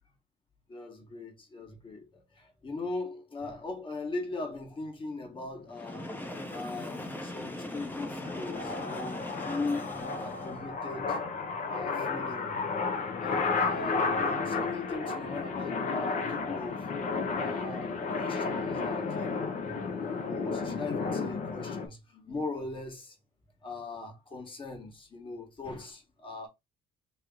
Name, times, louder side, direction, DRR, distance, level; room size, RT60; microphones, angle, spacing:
voice 1, 0.7-6.1 6.5-11.2 11.7-12.6 13.2-16.9 17.4-23.2 23.6-26.5, left 3 dB, 30° left, 1.6 m, -40 dB
Train, 5.7-10.7, left 1 dB, 10° left, 0.9 m, -40 dB
sound 1, 6.5-21.9, left 4 dB, 50° left, 1.0 m, -33 dB
3.3 x 3.0 x 3.7 m
cardioid pair, 110°, 17 cm